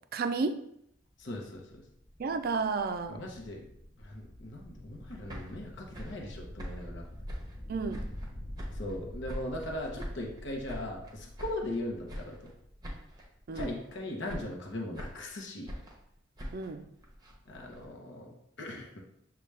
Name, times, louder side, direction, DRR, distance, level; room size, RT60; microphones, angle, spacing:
voice 1, 0.1-0.7 2.2-3.2 7.7-8.1 13.5-13.7 16.5-16.9, right 4 dB, 50° right, 8 dB, 0.4 m, -32 dB
sound 1, 0.9-14.6, equal, 25° left, 0.5 m, -47 dB
voice 2, 1.2-1.8 3.1-3.7 4.0-7.1 8.7-12.5 13.5-15.7 17.5-19.0, left 1 dB, 65° left, 0 dB, 0.8 m, -39 dB
sound 2, 5.0-8.3 8.6-9.7 10.0-11.8 12.1-12.6 12.8-13.3 13.5-14.0 14.3-15.3 15.7-17.9, equal, 20° right, 0.8 m, -44 dB
6.7 x 2.3 x 3.2 m, 0.73 s
head